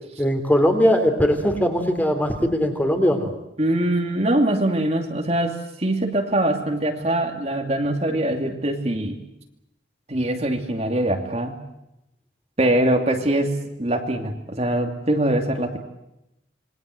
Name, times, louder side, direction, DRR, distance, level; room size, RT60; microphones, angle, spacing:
voice 1, 0.2-3.3, equal, 10° left, 5 dB, 3.4 m, -20 dB
voice 2, 3.6-9.2 10.1-11.6 12.6-15.8, right 1 dB, 35° right, 3 dB, 2.7 m, -23 dB
27.5 x 22.5 x 7.8 m, 0.87 s
head